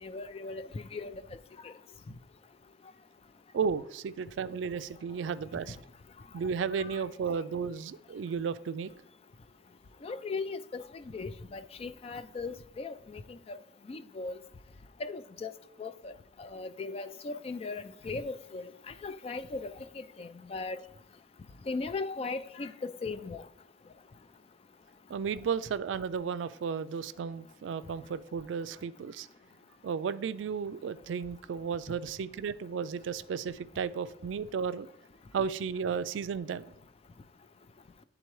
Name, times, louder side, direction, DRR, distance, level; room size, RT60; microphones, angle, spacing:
voice 1, 0.0-1.1 1.6-1.7 6.8-7.0 10.0-13.6 13.9-14.4 15.0-15.5 15.8-16.1 16.4-18.7 19.0-20.8 21.7-23.4, left 3 dB, 30° left, 0.3 m, -38 dB
voice 2, 3.5-5.8 6.3-8.9 25.1-29.3 29.8-34.9 35.3-36.7, right 6 dB, 85° right, 0.3 m, -34 dB
10.0 x 3.7 x 3.1 m
head